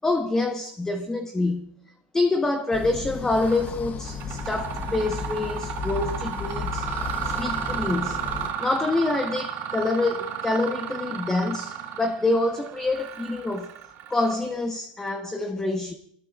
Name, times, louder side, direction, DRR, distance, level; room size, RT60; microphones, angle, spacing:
voice 1, 0.0-1.7 2.1-6.9 7.2-8.2 8.6-13.7 14.1-15.9, left 2 dB, 10° left, 1.1 m, -26 dB
sound 1, 2.7-8.5, left 5 dB, 30° left, 0.9 m, -34 dB
Mechanisms, 3.4-3.7 4.1-14.6, right 9 dB, 50° right, 2.4 m, -33 dB
25.5 x 20.0 x 2.4 m
supercardioid pair, 125°, 5 cm